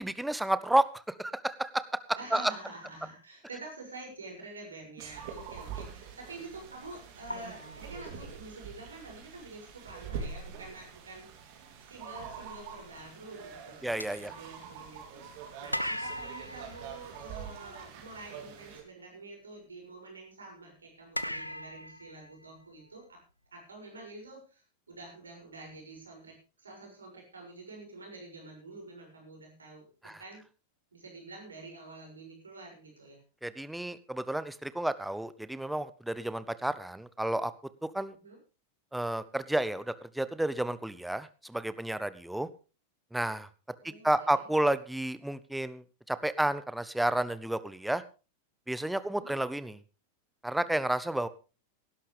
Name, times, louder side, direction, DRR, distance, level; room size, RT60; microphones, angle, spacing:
voice 1, 0.0-1.8 2.3-2.5 13.8-14.3 30.0-30.2 33.4-37.5 37.9-38.2 38.9-42.5 43.1-43.5 44.0-48.0 48.7-49.8 50.4-51.3, right 1 dB, 5° right, 15 dB, 0.8 m, -31 dB
voice 2, 2.2-11.3 11.9-13.9 14.2-15.3 15.6-23.2 23.5-30.4 30.9-33.2 38.2-38.4 43.8-44.5 49.0-49.3, right 2 dB, 75° right, 1 dB, 6.7 m, -48 dB
sound 1, 5.0-18.8, right 6 dB, 45° right, 3.1 m, -45 dB
sound 2, 6.3-6.4 7.3-8.6 9.9-10.0 10.4-10.6 14.0-15.2 15.7-17.8 21.1-23.0, left 1 dB, 90° left, 0.7 m, -39 dB
18.5 x 11.5 x 3.4 m, 0.33 s
figure-of-eight pair, 90°, 0 cm